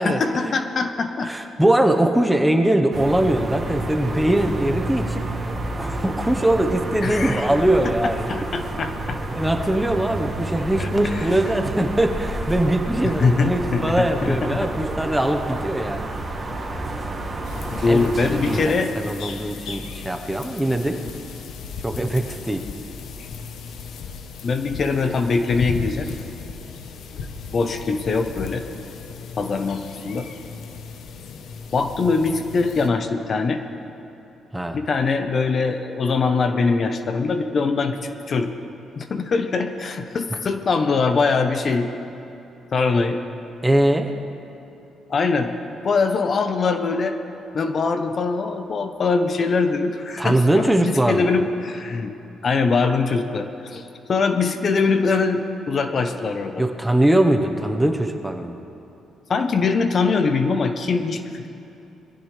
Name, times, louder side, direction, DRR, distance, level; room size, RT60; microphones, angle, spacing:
voice 1, 0.0-1.3 7.0-7.5 7.8-7.9 8.3-9.2 10.8-11.3 13.0-14.7 17.7-18.9 24.4-26.1 27.1-28.6 29.4-30.3 31.7-33.6 34.7-38.6 39.0-41.9 42.7-43.2 45.1-45.5 45.8-47.2 47.5-52.1 52.4-56.6 59.3-61.5, left 4 dB, 45° left, 7 dB, 0.9 m, -22 dB
voice 2, 1.2-5.2 5.8-8.3 9.3-16.0 17.8-21.0 21.8-22.7 34.5-34.8 43.6-44.1 50.2-51.3 56.6-58.6, right 1 dB, 5° right, 4 dB, 1.0 m, -21 dB
sound 1, 2.9-18.7, right 2 dB, 30° right, 2.5 m, -30 dB
sound 2, 17.4-32.9, left 5 dB, 75° left, 1.0 m, -36 dB
22.0 x 15.0 x 3.3 m, 2.8 s
cardioid pair, 90°, 0 cm